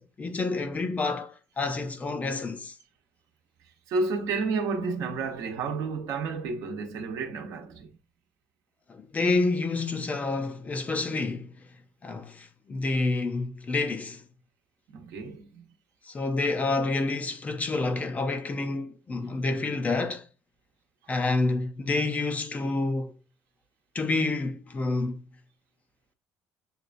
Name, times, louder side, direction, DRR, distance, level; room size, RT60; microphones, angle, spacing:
voice 1, 0.0-2.7 8.9-11.6 12.0-14.2 16.1-20.3 21.1-23.1 23.9-25.2, left 3 dB, 25° left, 0.6 m, -28 dB
voice 2, 3.9-7.9 14.9-15.7, right 4 dB, 65° right, 0.9 m, -31 dB
6.6 x 2.3 x 2.5 m
cardioid pair, 125°, 6 cm